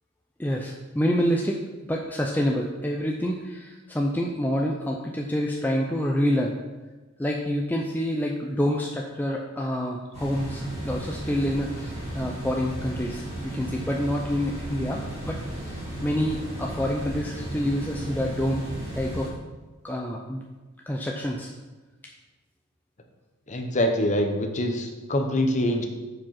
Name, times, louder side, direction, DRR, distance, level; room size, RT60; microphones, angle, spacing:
voice 1, 0.4-1.6 1.9-6.5 7.2-18.7 18.9-19.3 19.8-20.4 20.9-21.5, equal, 10° left, 0 dB, 0.4 m, -27 dB
sound 1, 10.1-19.3, right 1 dB, 30° right, 2.2 m, -35 dB
voice 2, 23.5-25.9, left 1 dB, 35° left, 4 dB, 0.8 m, -24 dB
7.2 x 5.0 x 5.8 m, 1.3 s
head